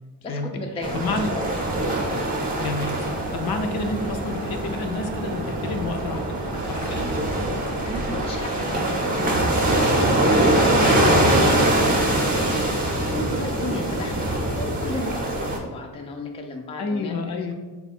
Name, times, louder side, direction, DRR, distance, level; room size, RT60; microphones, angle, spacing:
voice 1, 0.2-1.0 1.3-1.8 7.8-10.9 11.2-17.5, left 2 dB, 15° left, 2 dB, 0.4 m, -35 dB
sound 1, 0.8-15.6, right 1 dB, 20° right, 0.7 m, -23 dB
voice 2, 0.9-1.3 2.6-6.2 6.6-7.1 11.1-11.6 16.8-17.5, left 3 dB, 60° left, 5 dB, 0.6 m, -29 dB
sound 2, 0.9-12.0, right 6 dB, 75° right, 0.5 m, -38 dB
4.1 x 2.3 x 4.1 m, 1.3 s
cardioid pair, 95°, 42 cm